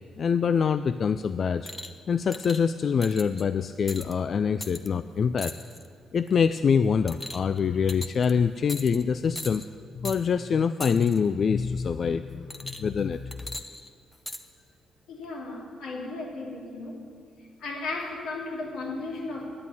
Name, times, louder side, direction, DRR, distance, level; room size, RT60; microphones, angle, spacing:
voice 1, 0.2-1.7 2.1-5.5 6.1-9.6 9.9-13.3, left 6 dB, 50° left, 12 dB, 0.3 m, -25 dB
sound 1, 1.7-2.0 2.3-2.6 3.0-3.4 3.9-4.1 4.6-4.9 5.4-5.9 6.3-6.5 7.1-7.6 7.9-8.3 8.7-9.0 9.3-9.7 10.0-10.2 10.8-11.2 12.5-13.0 13.3-14.4 15.2-15.3, left 1 dB, 15° left, 0.8 m, -39 dB
voice 2, 15.1-17.0 17.6-19.5, left 3 dB, 85° left, -2 dB, 2.9 m, -35 dB
11.0 x 8.3 x 9.5 m, 2.2 s
cardioid pair, 90°, 0 cm